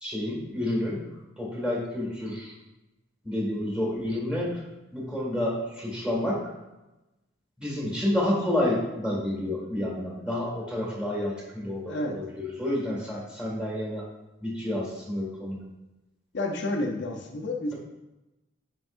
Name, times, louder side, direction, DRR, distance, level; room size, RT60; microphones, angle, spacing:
voice 1, 0.0-1.0 1.4-2.5 3.2-4.6 4.9-6.4 7.6-14.0 14.4-15.6, left 1 dB, 5° right, -4 dB, 2.0 m, -29 dB
voice 2, 16.3-17.7, left 2 dB, 60° left, 1 dB, 0.7 m, -30 dB
7.8 x 5.3 x 2.6 m, 1.0 s
head